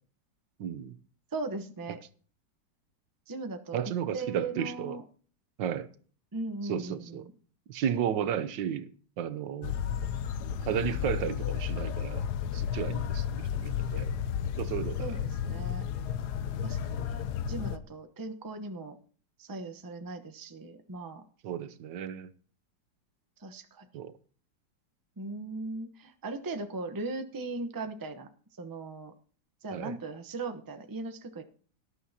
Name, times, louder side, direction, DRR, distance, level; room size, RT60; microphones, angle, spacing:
voice 1, 0.6-0.9 3.7-5.0 5.6-5.9 6.7-7.3 7.7-8.9 9.2-9.7 10.6-12.2 12.5-14.1 14.6-15.2 16.6-16.7 21.4-22.3 23.9-24.1 29.7-30.0, right 9 dB, 85° right, 1.5 m, -33 dB
voice 2, 1.3-2.0 3.3-3.8 4.1-5.0 6.3-7.3 15.0-15.8 16.6-19.0 19.4-21.2 23.4-23.9 25.2-28.3 28.6-29.1 29.6-31.4, right 3 dB, 20° right, 0.6 m, -38 dB
sound 1, 9.6-17.8, left 8 dB, 70° left, 1.2 m, -32 dB
18.0 x 11.0 x 2.8 m
omnidirectional pair, 1.9 m